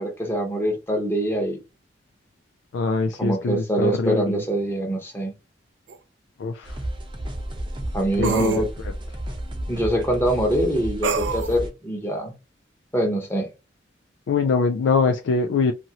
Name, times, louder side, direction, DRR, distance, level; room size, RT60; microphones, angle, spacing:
voice 1, 0.0-1.6 3.2-5.3 7.9-8.7 9.7-12.3 12.9-13.5, right 1 dB, 15° left, 0.9 m, -24 dB
voice 2, 2.7-4.4 6.4-6.8 8.2-8.9 14.3-15.7, left 4 dB, 85° left, 0.3 m, -23 dB
sound 1, 5.9-6.0 8.2-8.6 11.0-11.6, right 5 dB, 80° right, 0.4 m, -26 dB
sound 2, 6.6-11.7, right 1 dB, 25° right, 0.6 m, -32 dB
2.8 x 2.5 x 2.8 m
head